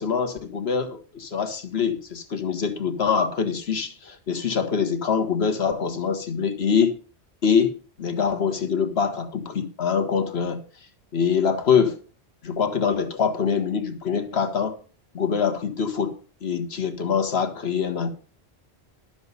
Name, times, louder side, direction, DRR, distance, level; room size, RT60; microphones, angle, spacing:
voice 1, 0.0-7.0 7.4-10.6 11.1-12.0 12.4-14.8 15.1-16.1 16.4-18.1, left 6 dB, 70° left, 1.6 m, -24 dB
12.0 x 7.1 x 5.5 m
omnidirectional pair, 1.1 m